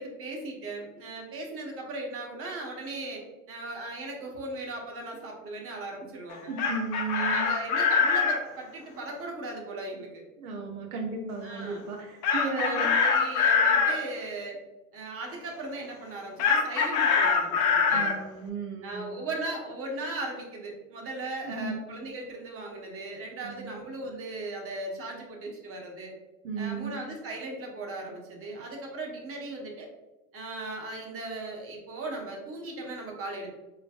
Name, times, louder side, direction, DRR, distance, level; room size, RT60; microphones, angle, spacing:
voice 1, 0.0-3.2 3.5-6.5 7.1-10.2 11.4-11.8 12.3-14.6 14.9-18.1 18.8-26.1 26.6-29.9 30.3-33.5, right 2 dB, 35° right, 0 dB, 1.0 m, -37 dB
Chicken rooster, 6.3-8.4 12.2-14.0 16.4-18.2, left 5 dB, 45° left, 0.7 m, -24 dB
voice 2, 6.5-7.5 10.4-12.9 17.9-19.2 21.4-21.8 23.4-23.7 26.4-27.0, right 4 dB, 85° right, 2 dB, 0.8 m, -34 dB
3.7 x 3.3 x 2.4 m, 1.1 s
hypercardioid pair, 95°, 41 cm